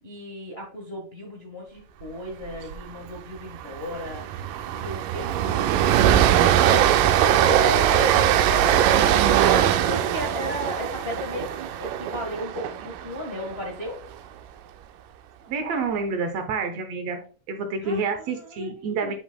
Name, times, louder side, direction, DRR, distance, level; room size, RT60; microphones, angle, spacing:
voice 1, 0.0-14.0 17.8-19.1, left 1 dB, 50° left, -2 dB, 0.7 m, -36 dB
Train, 2.5-2.7 3.0-3.2 3.5-13.7, right 10 dB, 85° right, 2.2 m, -21 dB
voice 2, 15.4-17.2 17.5-19.1, right 4 dB, 70° right, 7 dB, 1.7 m, -28 dB
8.9 x 5.4 x 2.2 m, 0.38 s
omnidirectional pair, 3.6 m